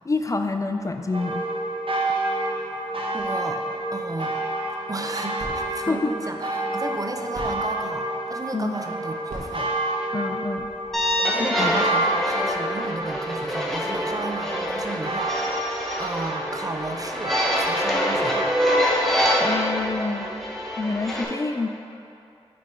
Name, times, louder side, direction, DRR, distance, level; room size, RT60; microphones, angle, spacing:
voice 1, 0.1-1.4 5.9-6.1 8.5-8.8 10.1-10.7 11.4-11.8 19.4-20.3 20.8-22.0, left 3 dB, 30° left, 6 dB, 0.3 m, -27 dB
sound 1, 1.1-19.3, right 1 dB, 55° right, 0.9 m, -30 dB
voice 2, 2.3-2.7 3.1-4.4 4.9-9.7 11.2-15.7 16.0-18.6, right 2 dB, 35° right, 4 dB, 0.6 m, -34 dB
sound 2, 4.8-11.2, right 1 dB, 90° right, 1.4 m, -44 dB
sound 3, 10.9-21.2, equal, ahead, 1.1 m, -25 dB
6.0 x 4.2 x 4.3 m, 2.6 s
cardioid pair, 45°, 11 cm